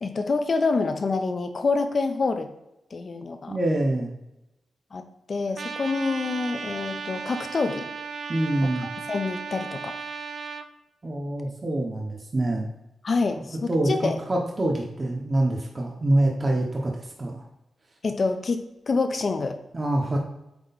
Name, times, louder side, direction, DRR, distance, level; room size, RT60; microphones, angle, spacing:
voice 1, 0.0-2.5 2.9-3.6 4.9-5.0 5.3-7.9 8.6-8.7 9.1-9.9 13.0-14.2 18.0-19.6, left 3 dB, 45° left, 7 dB, 0.8 m, -26 dB
voice 2, 3.5-4.1 8.3-8.9 11.0-12.7 13.7-17.4 19.7-20.2, right 1 dB, 30° right, -1 dB, 1.0 m, -25 dB
Trumpet, 5.6-10.7, right 5 dB, 60° right, 0.5 m, -35 dB
8.1 x 3.1 x 4.1 m, 0.90 s
wide cardioid pair, 105°, 0 cm